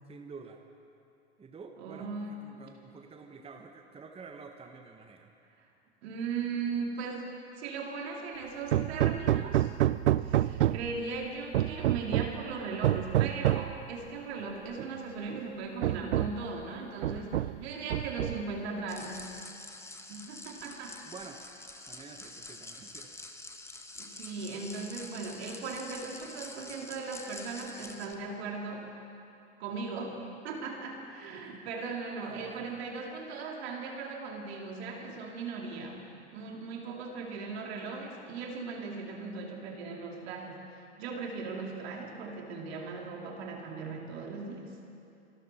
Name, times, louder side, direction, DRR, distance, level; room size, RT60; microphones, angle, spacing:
voice 1, 0.1-0.6 1.4-5.3 21.1-21.4 21.9-23.1 31.4-31.6 32.2-32.8, right 5 dB, 15° right, 4 dB, 1.1 m, -49 dB
voice 2, 1.8-2.4 6.0-7.3 7.6-9.7 10.2-19.3 20.1-21.0 24.0-28.9 29.6-36.0 36.3-44.8, right 4 dB, 65° right, 0 dB, 2.8 m, -38 dB
Hammer, 8.7-11.0 11.5-12.4 12.8-13.8 14.8-14.9 15.3-15.4 15.8-16.5 17.0-17.6 17.9-18.6, right 13 dB, 80° right, 0.5 m, -28 dB
sound 1, 18.9-28.1, left 2 dB, 10° left, 1.2 m, -46 dB
25.5 x 13.5 x 4.2 m, 2.7 s
hypercardioid pair, 90°, 34 cm